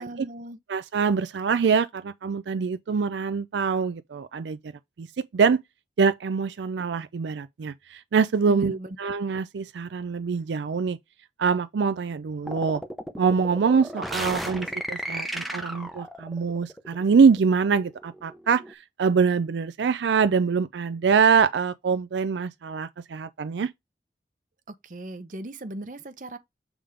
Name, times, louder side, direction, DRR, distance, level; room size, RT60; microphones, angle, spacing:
voice 1, 0.0-0.6 8.5-9.0 24.7-26.4, right 1 dB, 45° right, 0.8 m, -37 dB
voice 2, 0.7-4.7 5.0-5.1 5.3-5.6 6.0-11.0 11.4-12.8 13.2-23.7, right 5 dB, 85° right, 0.4 m, -24 dB
sound 1, 12.5-18.7, equal, ahead, 0.8 m, -35 dB
7.2 x 3.6 x 5.0 m
head